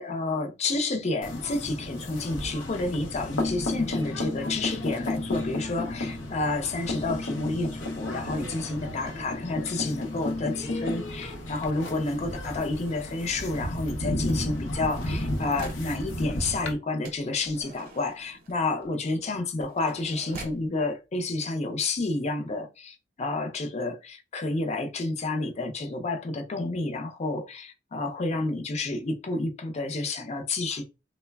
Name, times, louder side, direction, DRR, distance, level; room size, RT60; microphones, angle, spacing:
voice 1, 0.0-30.8, left 2 dB, 35° left, 0.5 m, -30 dB
sound 1, 1.2-16.7, left 1 dB, 85° left, 0.6 m, -33 dB
sound 2, 4.6-9.1, right 2 dB, 90° right, 0.4 m, -50 dB
sound 3, 14.6-16.0 17.0-20.7 21.5-21.6 21.8-22.1, right 2 dB, 50° right, 0.6 m, -46 dB
3.1 x 2.0 x 2.2 m
head